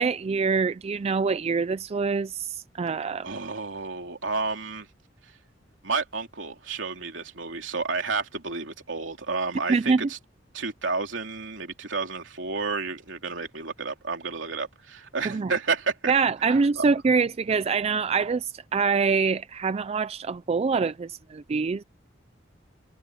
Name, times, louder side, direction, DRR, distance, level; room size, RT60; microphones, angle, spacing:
voice 1, 0.0-3.3 9.7-10.0 15.2-15.5 16.1-21.8, right 5 dB, 35° right, 0.4 m, -25 dB
voice 2, 3.2-4.9 5.8-10.2 10.5-16.1 16.5-16.8, right 4 dB, 70° right, 3.4 m, -31 dB
head